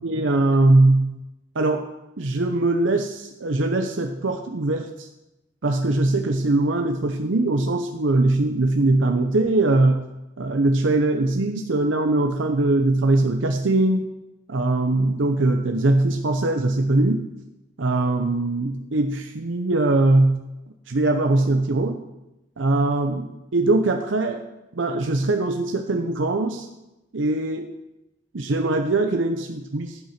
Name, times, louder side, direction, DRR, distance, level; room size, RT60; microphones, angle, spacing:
voice 1, 0.0-1.2 1.5-1.9 2.2-5.1 5.6-10.1 10.4-14.1 14.5-17.3 17.8-20.4 20.9-22.0 22.6-24.4 24.7-26.7 27.1-27.7 28.3-30.0, right 2 dB, 80° right, 4 dB, 0.7 m, -21 dB
14.5 x 5.8 x 5.9 m, 0.95 s
head